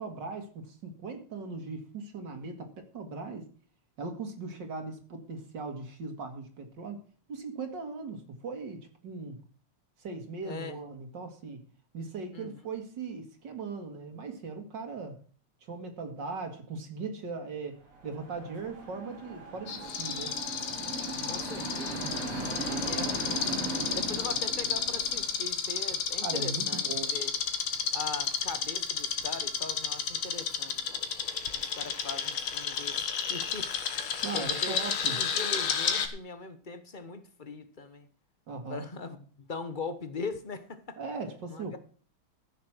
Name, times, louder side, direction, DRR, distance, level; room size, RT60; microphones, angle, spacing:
voice 1, 0.0-3.5 4.0-7.0 7.3-9.4 10.0-11.6 11.9-15.2 15.7-20.4 26.2-27.2 34.2-35.2 38.5-38.8 41.0-41.8, right 4 dB, 55° right, 2.7 m, -39 dB
voice 2, 10.4-10.8 12.3-12.6 21.2-22.0 22.7-23.5 23.9-26.9 27.1-27.3 27.9-30.8 31.5-33.7 34.3-34.8 35.2-38.1 38.7-41.0 41.5-41.8, left 4 dB, 35° left, 0.7 m, -40 dB
sound 1, 17.9-25.3, right 2 dB, 90° right, 4.3 m, -38 dB
sound 2, 19.7-36.1, left 7 dB, 75° left, 2.2 m, -32 dB
15.0 x 6.6 x 6.1 m
omnidirectional pair, 2.4 m